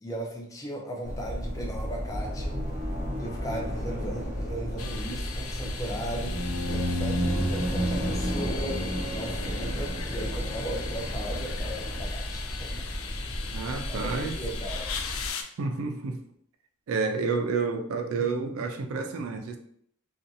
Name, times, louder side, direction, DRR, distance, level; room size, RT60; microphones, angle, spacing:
voice 1, 0.0-2.6 3.2-6.4 6.7-8.8 9.1-13.0 13.9-14.9, right 1 dB, 15° left, 0 dB, 0.4 m, -37 dB
sound 1, 1.0-15.3, equal, 35° right, 0.6 m, -34 dB
sound 2, 4.8-15.4, left 6 dB, 80° left, 0.4 m, -39 dB
sound 3, 6.2-10.8, right 1 dB, 55° left, 1.0 m, -31 dB
voice 2, 13.5-14.3 15.6-16.2 16.9-19.6, right 4 dB, 80° right, 5 dB, 0.4 m, -29 dB
2.6 x 2.3 x 2.7 m, 0.67 s
head